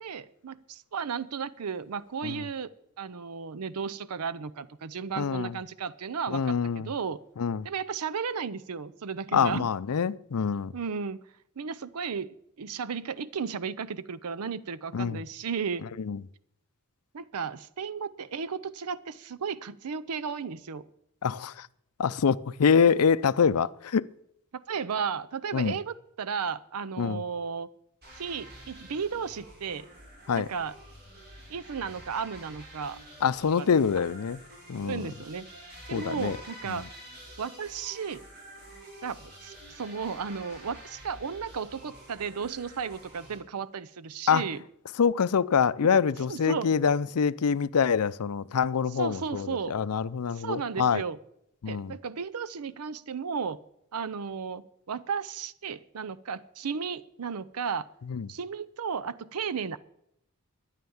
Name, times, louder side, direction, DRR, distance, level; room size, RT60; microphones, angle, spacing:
voice 1, 0.0-2.7 3.0-7.2 7.6-9.7 10.7-11.2 11.6-12.3 12.6-15.8 17.1-20.9 24.7-27.7 28.1-29.9 30.3-30.8 31.5-33.0 33.6-33.7 34.8-35.5 35.9-36.9 37.4-38.2 39.0-44.6 45.8-45.9 46.3-46.7 49.0-49.7 50.3-51.2 51.7-53.6 53.9-57.9 58.3-59.8, right 6 dB, 80° right, 0.6 m, -34 dB
voice 2, 5.2-5.6 6.3-6.9 7.4-7.7 9.3-10.7 14.9-15.2 16.0-16.2 21.2-21.7 22.0-24.0 25.5-25.7 27.0-27.2 30.3-30.5 33.2-34.4 34.7-35.1 35.9-36.4 36.7-36.9 44.3-44.4 45.0-51.0 51.6-52.0 58.1-58.3, left 6 dB, 75° left, 0.5 m, -25 dB
sound 1, 28.0-43.4, right 1 dB, 45° right, 6.4 m, -48 dB
13.0 x 10.0 x 7.1 m
head